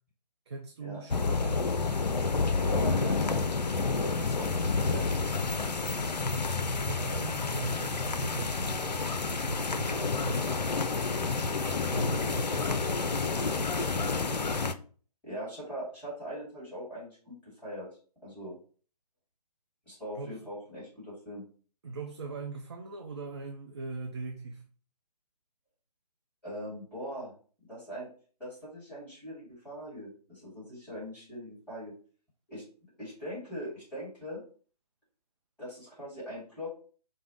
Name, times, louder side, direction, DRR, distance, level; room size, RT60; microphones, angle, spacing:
voice 1, 0.5-1.7 6.7-9.1 9.4-11.0 11.9-13.1 20.1-20.4 21.8-24.6, right 3 dB, 40° right, 3 dB, 0.5 m, -40 dB
sound 1, 1.1-14.7, left 4 dB, 85° left, 0.5 m, -29 dB
voice 2, 2.6-6.2 14.0-14.4 15.2-17.9 18.2-18.6 19.9-21.4 26.4-27.3 27.7-28.1 28.4-31.9 32.5-32.6 33.0-34.4 35.6-36.7, equal, 5° left, -10 dB, 1.7 m, -41 dB
4.9 x 2.1 x 3.8 m, 0.41 s
figure-of-eight pair, 145°, 21 cm